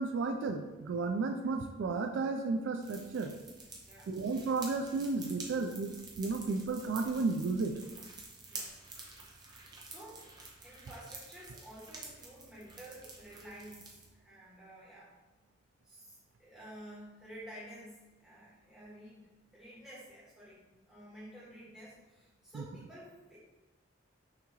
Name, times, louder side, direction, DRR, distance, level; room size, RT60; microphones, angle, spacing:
voice 1, 0.0-3.3 4.1-7.8 22.5-22.6, right 4 dB, 70° right, 5 dB, 0.3 m, -33 dB
sound 1, 2.8-14.1, right 3 dB, 20° right, 0.6 m, -49 dB
voice 2, 3.8-4.2 8.5-8.8 9.5-10.3 10.6-15.1 15.8-23.4, right 1 dB, 5° right, -9 dB, 1.5 m, -52 dB
5.8 x 2.8 x 2.9 m, 1.2 s
head